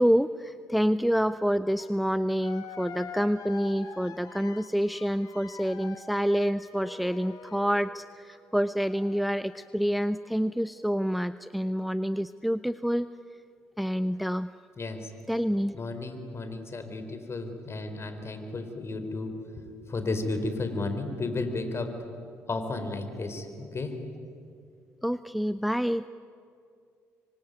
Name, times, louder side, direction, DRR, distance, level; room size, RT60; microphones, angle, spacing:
voice 1, 0.0-13.1 13.8-14.5 15.3-15.7 25.0-26.1, equal, ahead, 14 dB, 0.6 m, -27 dB
sound 1, 1.8-1.9 2.4-8.0 8.8-9.7, left 5 dB, 55° left, 2.5 m, -45 dB
voice 2, 14.8-15.1 15.7-21.9 22.5-24.0, left 2 dB, 35° left, 7 dB, 4.4 m, -33 dB
26.0 x 24.5 x 9.3 m, 2.5 s
hypercardioid pair, 50°, 7 cm